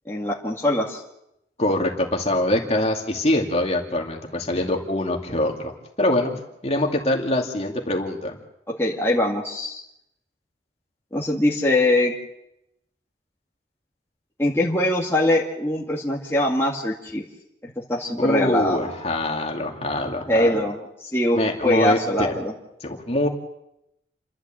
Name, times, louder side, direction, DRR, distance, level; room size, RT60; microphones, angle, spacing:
voice 1, 0.1-1.0 8.8-9.8 11.1-12.1 14.4-17.2 17.9-18.8 20.3-22.5, left 1 dB, 15° left, -4 dB, 2.2 m, -22 dB
voice 2, 1.6-5.7 6.0-6.3 6.6-8.4 18.2-20.6 21.3-22.3 22.8-23.3, left 1 dB, 35° left, 1 dB, 2.5 m, -24 dB
29.5 x 12.0 x 7.6 m, 0.84 s
head